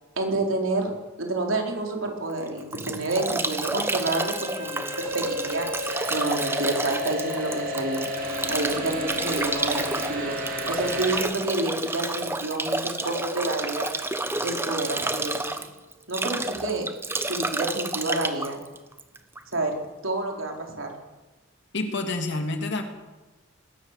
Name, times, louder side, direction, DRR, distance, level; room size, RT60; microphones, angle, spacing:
voice 1, 0.2-0.9 1.2-8.1 8.5-10.4 10.7-13.9 14.4-15.5 16.1-16.9 17.3-18.6 19.5-19.8 20.0-20.9, right 2 dB, 65° right, 2 dB, 4.2 m, -29 dB
Bathtub (filling or washing) / Drip / Trickle dribble, 2.3-19.5, right 2 dB, 10° right, 1.2 m, -30 dB
sound 1, 4.1-11.2, left 1 dB, 40° right, 7.5 m, -32 dB
voice 2, 21.7-22.8, left 2 dB, 55° left, 5 dB, 2.9 m, -28 dB
20.5 x 17.5 x 7.6 m, 1.1 s
head